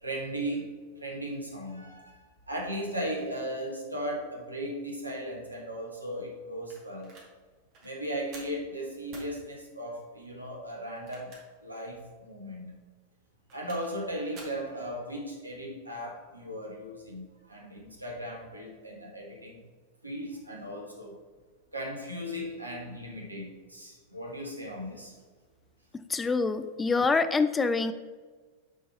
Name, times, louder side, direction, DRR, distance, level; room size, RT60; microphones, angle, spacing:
voice 1, 0.0-2.2 2.5-7.1 7.8-11.3 11.6-12.7 13.5-19.6 20.0-21.2 21.7-25.2, equal, 85° right, 0 dB, 1.6 m, -37 dB
sound 1, 6.7-7.3 7.7-7.9 8.3-8.6 9.1-9.3 10.9-11.6 12.0-12.1 13.3-14.0 14.3-14.6, right 3 dB, 40° right, 2.1 m, -49 dB
voice 2, 26.1-27.9, left 4 dB, 15° left, 11 dB, 0.4 m, -26 dB
9.0 x 4.6 x 4.3 m, 1.4 s
figure-of-eight pair, 90°, 0 cm